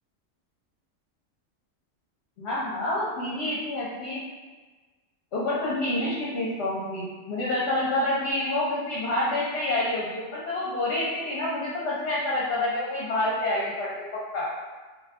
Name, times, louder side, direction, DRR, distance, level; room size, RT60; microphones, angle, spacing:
voice 1, 2.4-4.2 5.3-14.5, left 1 dB, 60° left, -6 dB, 0.8 m, -28 dB
2.6 x 2.2 x 3.5 m, 1.3 s
omnidirectional pair, 1.4 m